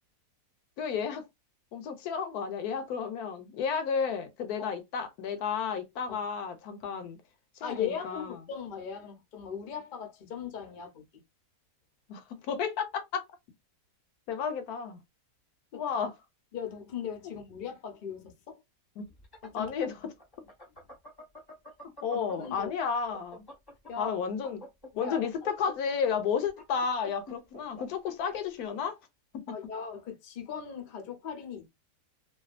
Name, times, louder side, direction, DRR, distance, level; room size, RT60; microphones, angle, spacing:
voice 1, 0.8-1.3 1.7-7.2 7.6-8.4 12.1-13.2 14.3-15.0 15.7-16.1 19.0-19.1 19.5-20.1 22.0-23.5 24.0-24.6 25.0-29.0 29.3-29.6, left 6 dB, 75° left, 1.0 m, -32 dB
voice 2, 7.6-11.0 15.7-15.8 16.5-18.6 19.4-19.7 22.4-22.7 23.9-24.1 24.9-25.2 29.5-31.7, left 7 dB, 55° left, 0.5 m, -38 dB
sound 1, 19.1-22.7 23.0-28.4, left 1 dB, 20° left, 0.7 m, -47 dB
2.7 x 2.2 x 2.4 m
omnidirectional pair, 1.7 m